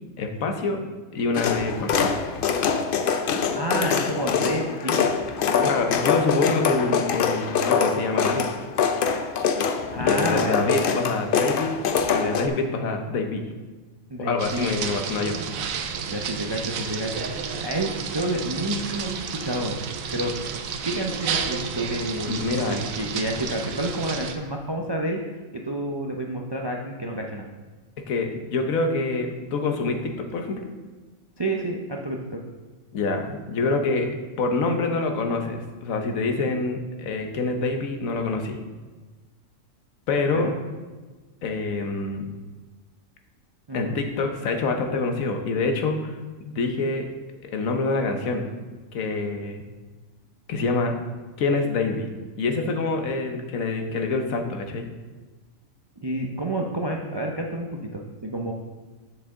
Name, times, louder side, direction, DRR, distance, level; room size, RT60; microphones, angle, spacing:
voice 1, 0.2-0.8 1.1-2.1 5.6-8.5 10.0-11.7 12.1-13.5 14.2-15.4 22.3-22.8 28.1-30.6 32.9-34.1 34.4-38.6 40.1-40.5 41.4-42.3 43.7-46.1 46.4-47.1 47.5-48.4 48.9-49.6 50.5-50.9 51.4-52.1 52.4-54.9, left 3 dB, 80° left, 4 dB, 1.3 m, -26 dB
sound 1, 1.3-12.5, left 6 dB, 60° left, 0.6 m, -24 dB
voice 2, 3.5-5.1 5.4-5.7 9.9-10.6 14.1-14.8 16.1-19.8 20.1-20.3 20.8-27.5 31.4-32.4 40.3-40.5 43.7-44.0 56.0-58.5, right 1 dB, 40° right, 1 dB, 0.3 m, -29 dB
sound 2, 14.4-24.3, right 6 dB, 80° right, 1.1 m, -31 dB
7.7 x 6.6 x 3.7 m, 1.3 s
omnidirectional pair, 1.4 m